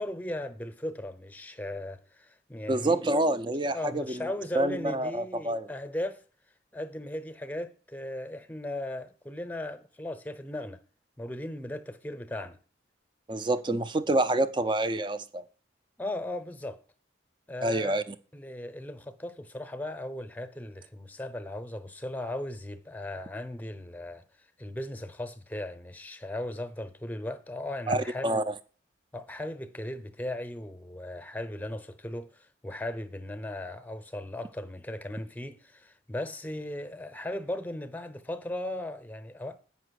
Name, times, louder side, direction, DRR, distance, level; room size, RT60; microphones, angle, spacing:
voice 1, 0.0-3.0 3.6-6.2 6.7-10.8 11.2-12.6 16.0-16.8 17.5-18.0 18.3-28.3 29.1-39.6, left 1 dB, 10° left, 0.8 m, -37 dB
voice 2, 2.7-4.3 4.5-5.7 13.3-15.4 17.6-18.2 27.9-28.4, right 2 dB, 25° right, 0.5 m, -27 dB
8.5 x 5.9 x 6.4 m
head